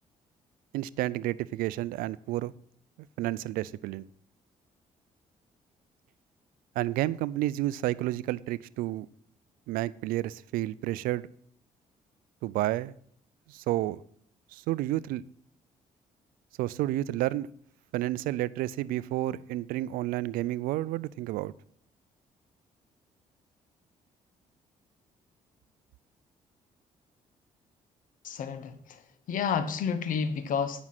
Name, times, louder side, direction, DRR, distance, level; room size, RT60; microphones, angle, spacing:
voice 1, 0.7-2.5 3.2-4.1 6.8-9.1 9.7-11.3 12.4-12.9 13.5-14.0 14.5-15.2 16.6-17.5 17.9-21.5, right 15 dB, 85° right, 20 dB, 0.4 m, -30 dB
voice 2, 28.2-29.0 29.3-30.8, left 6 dB, 70° left, 11 dB, 1.2 m, -30 dB
9.7 x 6.1 x 5.9 m, 0.63 s
supercardioid pair, 65°, 14 cm